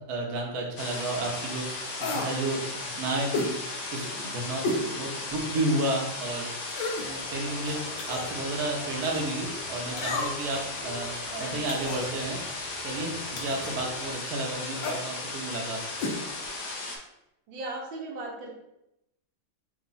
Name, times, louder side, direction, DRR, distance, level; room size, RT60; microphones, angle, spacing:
voice 1, 0.1-1.9 2.1-3.5 3.9-4.7 4.9-6.5 7.0-11.1 11.4-12.4 12.8-16.2, right 2 dB, 60° right, 0 dB, 1.3 m, -32 dB
sound 1, 0.8-17.0, left 2 dB, 55° left, 0.8 m, -36 dB
sound 2, 2.0-2.4 3.3-3.5 4.6-4.9 5.3-5.4 6.7-7.1 8.0-8.3 10.0-10.5 11.7-12.1 13.4-13.6 14.8-15.0 16.0-16.2 16.4-16.5, left 2 dB, 80° left, 1.5 m, -31 dB
voice 2, 4.6-4.9 7.0-7.1 11.3-12.3 13.5-13.9 17.5-18.5, right 2 dB, 80° right, -1 dB, 1.6 m, -39 dB
sound 3, 7.0-14.1, right 1 dB, 30° right, 0.7 m, -46 dB
4.7 x 2.4 x 4.0 m, 0.84 s
omnidirectional pair, 2.1 m